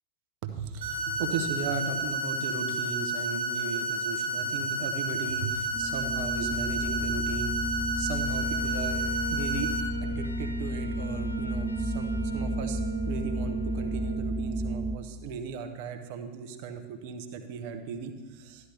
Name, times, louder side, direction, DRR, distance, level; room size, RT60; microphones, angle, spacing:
voice 1, 0.4-9.7 10.0-12.8 13.1-18.7, right 5 dB, 45° right, 6 dB, 1.1 m, -37 dB
sound 1, 0.8-9.8, right 1 dB, 60° right, 1.8 m, -31 dB
sound 2, 5.7-15.0, right 1 dB, 5° right, 0.6 m, -32 dB
Wind instrument woodwind instrument, 8.2-14.3, left 1 dB, 80° left, 0.5 m, -44 dB
13.0 x 10.5 x 3.4 m, 1.3 s
figure-of-eight pair, 90°, 0 cm